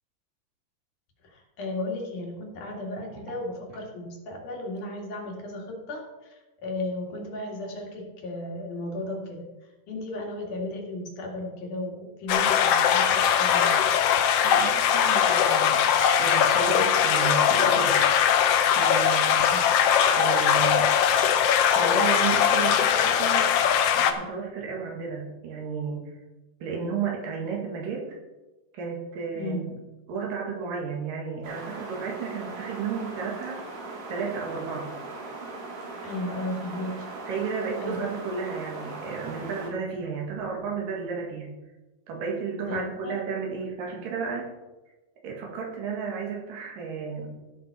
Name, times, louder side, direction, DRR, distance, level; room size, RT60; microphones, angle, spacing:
voice 1, 1.2-9.5 9.9-13.7 19.5-19.6 29.3-29.6 36.0-37.1 37.8-38.0 42.7-43.1, left 1 dB, 70° left, 0 dB, 3.4 m, -35 dB
sound 1, 12.3-24.1, left 8 dB, 85° left, 1.3 m, -21 dB
voice 2, 14.4-15.9 16.2-18.0 18.7-19.5 20.1-20.9 21.7-23.4 24.0-26.1 26.6-28.2 28.7-29.8 30.1-33.6 34.1-34.9 37.2-41.6 42.1-44.5 45.2-47.3, right 5 dB, 85° right, -1 dB, 3.7 m, -33 dB
sound 2, 31.4-39.7, right 3 dB, 70° right, 3.4 m, -39 dB
16.0 x 6.0 x 4.6 m, 1.1 s
omnidirectional pair, 3.8 m